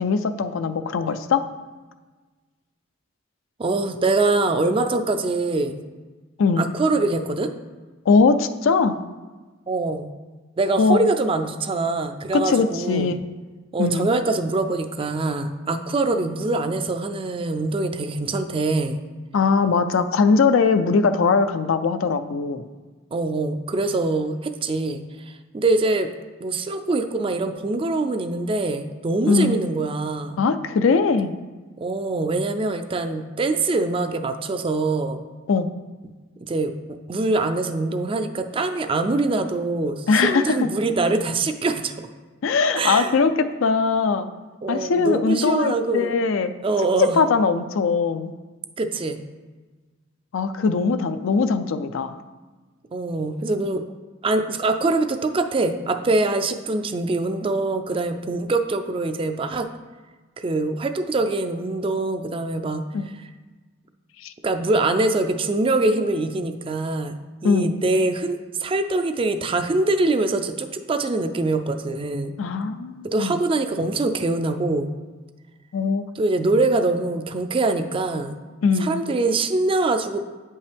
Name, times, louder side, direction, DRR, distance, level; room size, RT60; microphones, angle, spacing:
voice 1, 0.0-1.4 6.4-6.7 8.1-9.0 10.8-11.1 12.3-13.2 13.8-14.1 19.3-22.6 29.3-29.6 30.4-31.3 35.5-35.7 40.1-40.7 42.4-43.3 43.6-44.3 44.7-46.5 47.0-48.3 50.3-52.2 62.9-63.1 64.2-64.3 67.4-67.8 72.4-73.4 75.7-76.0 78.6-78.9, left 4 dB, 70° left, 10 dB, 0.4 m, -20 dB
voice 2, 3.6-5.8 6.6-7.5 9.7-10.1 10.6-13.1 13.7-19.0 23.1-26.1 26.4-30.4 31.8-35.2 36.4-42.1 42.8-43.1 44.6-46.1 46.6-47.2 48.8-49.2 52.9-53.8 54.2-59.7 60.4-62.8 64.4-67.1 67.4-72.3 73.0-74.9 76.2-78.4 78.8-80.2, right 2 dB, 25° right, 8 dB, 0.4 m, -24 dB
8.1 x 5.4 x 3.4 m, 1.3 s
head